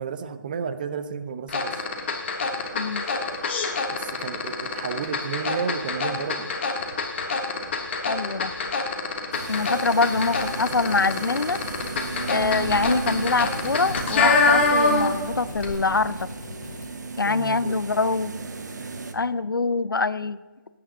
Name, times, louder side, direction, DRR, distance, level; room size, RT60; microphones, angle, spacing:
voice 1, 0.0-1.8 3.9-6.5 17.3-17.8, right 6 dB, 25° right, 11 dB, 0.5 m, -32 dB
sound 1, 1.5-15.3 15.5-15.7, left 4 dB, 35° left, 1.5 m, -25 dB
voice 2, 8.1-8.5 9.5-11.6 12.3-16.3 17.2-18.4 19.1-20.4, left 4 dB, 85° left, 17 dB, 0.6 m, -24 dB
sound 2, 9.3-19.1, right 4 dB, 55° right, 1.1 m, -35 dB
sound 3, 9.9-16.9, left 2 dB, 60° left, 3.6 m, -42 dB
18.0 x 8.8 x 3.8 m, 1.3 s
figure-of-eight pair, 160°, 11 cm